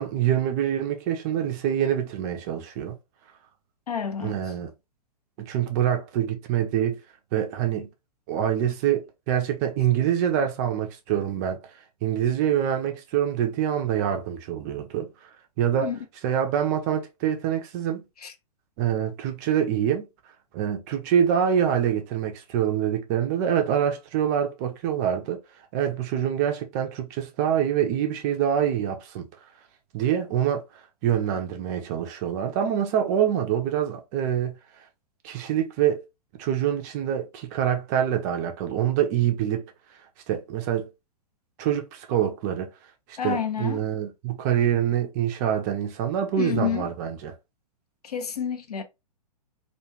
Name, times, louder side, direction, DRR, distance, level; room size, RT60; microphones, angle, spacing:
voice 1, 0.0-3.0 4.2-4.7 5.4-7.0 7.3-7.9 8.3-11.6 12.0-15.1 15.6-15.9 16.2-18.0 18.8-20.1 20.5-25.4 25.7-29.3 29.9-34.6 35.2-36.0 36.4-39.7 40.3-40.9 41.6-42.7 43.1-47.3, right 9 dB, 25° right, 0.4 m, -25 dB
voice 2, 3.9-4.4 15.8-16.0 18.2-18.3 43.2-43.8 46.4-46.9 48.0-48.8, left 8 dB, 65° left, 0.6 m, -29 dB
2.3 x 2.2 x 3.0 m
figure-of-eight pair, 110°, 21 cm